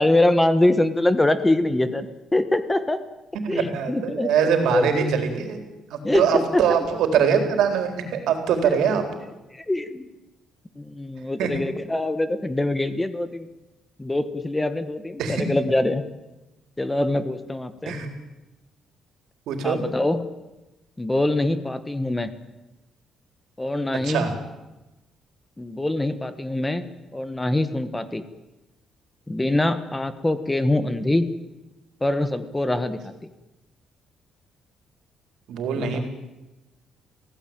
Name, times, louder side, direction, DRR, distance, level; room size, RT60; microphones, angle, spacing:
voice 1, 0.0-2.1 2.3-3.0 3.5-4.3 4.7-5.1 6.0-6.9 8.6-9.0 9.5-10.1 10.8-13.5 14.0-16.0 16.8-17.9 19.6-20.3 21.0-22.3 23.6-24.3 25.6-26.8 27.1-28.2 29.3-31.3 32.0-33.1 35.8-36.0, left 1 dB, 10° left, 12 dB, 1.3 m, -24 dB
voice 2, 3.3-5.6 5.9-9.0 11.4-11.5 15.2-15.4 17.9-18.1 19.5-19.8 24.0-24.3 35.5-36.1, right 7 dB, 85° right, 6 dB, 4.2 m, -23 dB
26.5 x 16.5 x 9.1 m, 1.0 s
cardioid pair, 145°, 0 cm